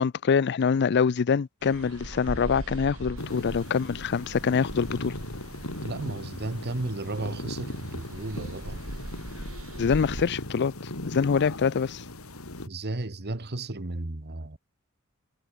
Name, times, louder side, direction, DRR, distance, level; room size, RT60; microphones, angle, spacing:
voice 1, 0.0-5.2 9.8-12.0, left 6 dB, 50° left, 0.4 m, -25 dB
sound 1, 1.6-10.3, right 1 dB, 75° right, 2.6 m, -41 dB
sound 2, 3.2-12.7, left 1 dB, 80° left, 3.4 m, -38 dB
voice 2, 5.8-8.8 12.7-14.6, right 2 dB, 50° right, 1.5 m, -34 dB
head